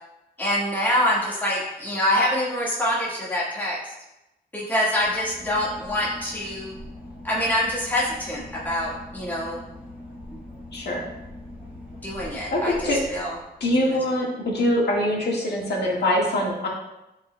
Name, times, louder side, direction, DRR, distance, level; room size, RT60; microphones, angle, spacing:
voice 1, 0.4-3.9 4.5-6.8 7.2-9.6 12.0-12.7 13.1-13.4 13.9-14.0, left 1 dB, 10° left, -6 dB, 1.6 m, -25 dB
Boat Water vehicle / Engine, 4.9-13.8, left 1 dB, 5° right, 1.7 m, -42 dB
voice 2, 12.5-13.0 13.6-16.7, left 1 dB, 80° left, -2 dB, 1.6 m, -23 dB
10.5 x 4.4 x 2.2 m, 0.93 s
wide cardioid pair, 145°, 17 cm